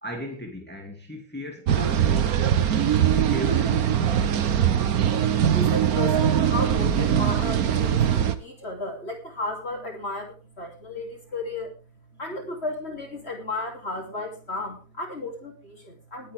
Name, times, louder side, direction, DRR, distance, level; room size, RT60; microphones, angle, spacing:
voice 1, 0.0-2.6 3.0-4.3, equal, 5° left, 2.4 m, -37 dB
sound 1, 1.7-8.4, right 9 dB, 75° right, 1.5 m, -21 dB
voice 2, 5.4-11.7 12.1-16.3, left 2 dB, 45° left, 3.2 m, -34 dB
20.5 x 8.6 x 3.5 m
omnidirectional pair, 1.6 m